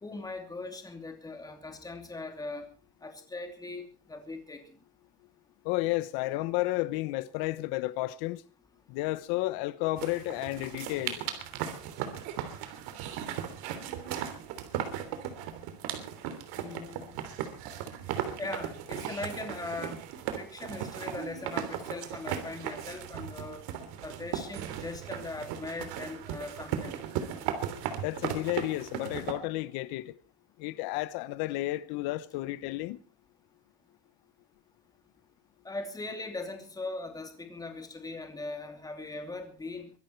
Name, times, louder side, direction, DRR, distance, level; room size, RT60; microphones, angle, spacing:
voice 1, 0.0-2.7 3.0-4.6 16.6-17.3 18.4-20.0 20.4-23.7 24.0-27.0 35.6-39.9, left 3 dB, 10° left, 2.8 m, -40 dB
voice 2, 5.6-8.4 8.9-11.2 28.0-30.2 30.6-33.0, left 18 dB, 90° left, 1.0 m, -32 dB
sound 1, 10.0-29.3, right 10 dB, 85° right, 3.3 m, -37 dB
23.5 x 12.0 x 4.5 m
cardioid pair, 170°, 36 cm